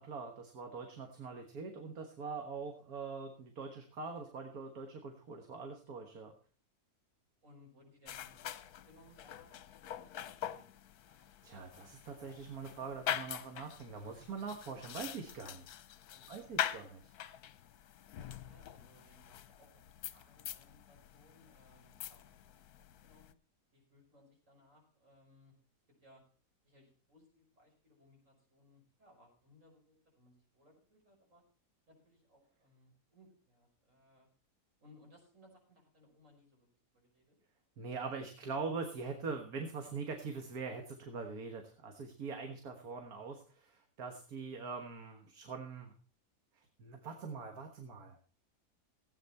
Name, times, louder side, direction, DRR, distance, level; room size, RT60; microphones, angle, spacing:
voice 1, 0.0-6.3 11.1-15.7 16.3-17.1 37.8-45.9 46.5-48.2, right 4 dB, 70° right, 5 dB, 1.9 m, -43 dB
voice 2, 7.4-10.6 16.1-16.5 16.8-16.9 18.2-23.3 23.7-25.5 26.0-26.2 26.6-31.4 31.9-34.3 34.8-36.7 36.9-37.4, left 1 dB, 55° right, -1 dB, 5.6 m, -64 dB
sound 1, 8.1-23.3, left 10 dB, 80° left, 1.2 m, -44 dB
16.5 x 8.9 x 4.2 m, 0.42 s
omnidirectional pair, 1.6 m